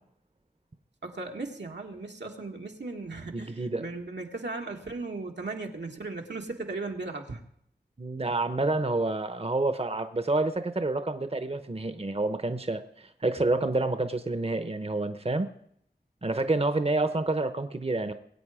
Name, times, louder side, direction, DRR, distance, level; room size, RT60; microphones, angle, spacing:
voice 1, 1.0-7.4, right 3 dB, 85° right, 2 dB, 1.6 m, -37 dB
voice 2, 3.3-3.8 8.0-15.5 16.2-18.1, right 2 dB, 35° right, 10 dB, 0.9 m, -28 dB
22.0 x 8.5 x 4.9 m, 0.72 s
wide cardioid pair, 50°, 18 cm